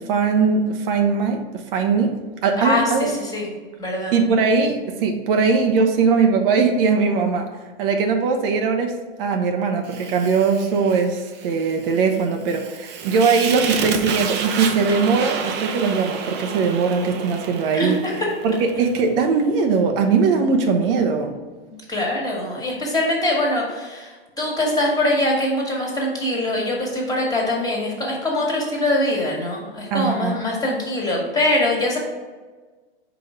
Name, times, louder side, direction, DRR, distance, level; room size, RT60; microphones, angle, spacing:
voice 1, 0.0-2.1 2.4-3.2 4.1-7.5 7.8-18.0 18.4-21.3 29.9-30.4, right 5 dB, 60° right, 4 dB, 0.9 m, -20 dB
voice 2, 2.6-3.4 3.8-4.1 17.7-18.3 21.9-32.0, left 1 dB, 10° left, -2 dB, 1.7 m, -23 dB
Fire, 9.9-19.1, right 6 dB, 35° right, 0.7 m, -30 dB
4.9 x 4.0 x 4.9 m, 1.3 s
hypercardioid pair, 110°, 31 cm